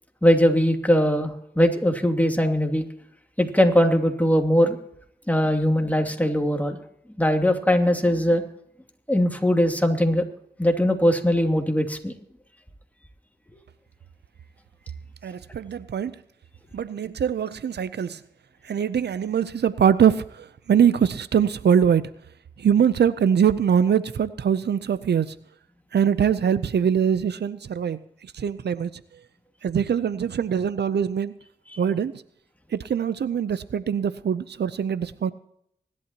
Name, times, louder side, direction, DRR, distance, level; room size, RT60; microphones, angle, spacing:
voice 1, 0.2-2.8 3.4-4.8 5.3-6.8 7.2-8.4 9.1-10.2 10.6-12.1 31.7-31.8, equal, 10° left, 3 dB, 2.7 m, -20 dB
voice 2, 15.2-16.1 16.7-18.2 18.6-22.1 22.6-25.3 25.9-28.0 28.3-28.9 29.6-31.3 31.8-32.1 32.7-35.3, right 8 dB, 90° right, 15 dB, 0.6 m, -22 dB
24.5 x 11.5 x 2.9 m, 0.72 s
cardioid pair, 40°, 17 cm